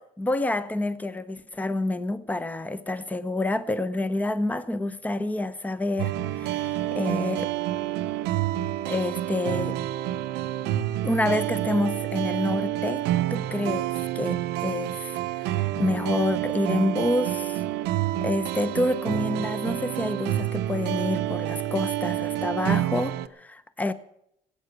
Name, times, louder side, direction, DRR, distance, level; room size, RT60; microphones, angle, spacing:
voice 1, 0.0-7.5 8.9-9.8 11.0-13.0 13.3-17.6 18.2-23.9, left 2 dB, 10° left, 0.8 m, -28 dB
sound 1, 6.0-23.3, right 13 dB, 90° right, 0.8 m, -28 dB
16.0 x 8.8 x 8.3 m
cardioid pair, 110°, 17 cm